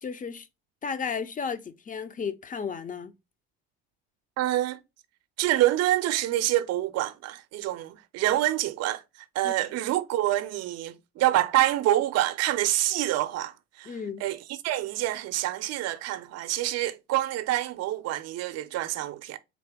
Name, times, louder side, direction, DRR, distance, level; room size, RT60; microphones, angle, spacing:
voice 1, 0.0-0.5 0.8-3.1 9.4-9.5 13.9-14.2, left 6 dB, 25° left, 0.5 m, -33 dB
voice 2, 4.4-4.8 5.4-9.0 9.3-19.4, right 14 dB, 50° right, 0.6 m, -27 dB
4.0 x 2.8 x 3.4 m
hypercardioid pair, 70°, 33 cm